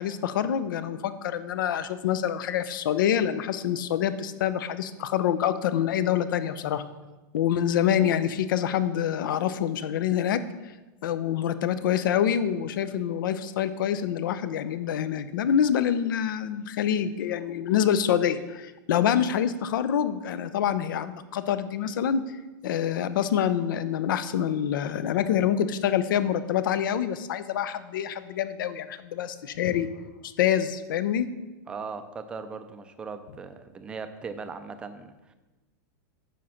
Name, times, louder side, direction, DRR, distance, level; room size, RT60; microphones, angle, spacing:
voice 1, 0.0-6.8 7.3-10.4 11.0-22.2 22.6-29.9 30.2-31.3, left 9 dB, 85° left, 13 dB, 0.7 m, -26 dB
voice 2, 31.7-35.3, right 5 dB, 10° right, 9 dB, 0.4 m, -39 dB
9.2 x 5.1 x 5.8 m, 1.1 s
supercardioid pair, 175°, 11 cm